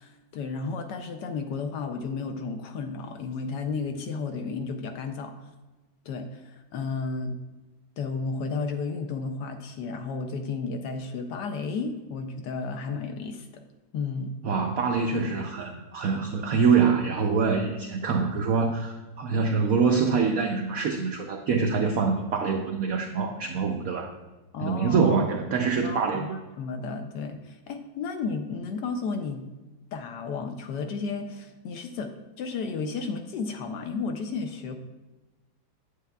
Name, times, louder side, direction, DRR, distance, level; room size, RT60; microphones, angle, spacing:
voice 1, 0.0-5.3 6.1-7.4 8.0-13.6 13.9-14.3 24.5-25.1 25.8-29.5 29.9-34.8, left 4 dB, 70° left, 6 dB, 1.1 m, -33 dB
voice 2, 14.4-24.1 24.6-26.4, right 5 dB, 80° right, 3 dB, 0.7 m, -25 dB
8.3 x 8.2 x 2.2 m, 1.1 s
omnidirectional pair, 2.1 m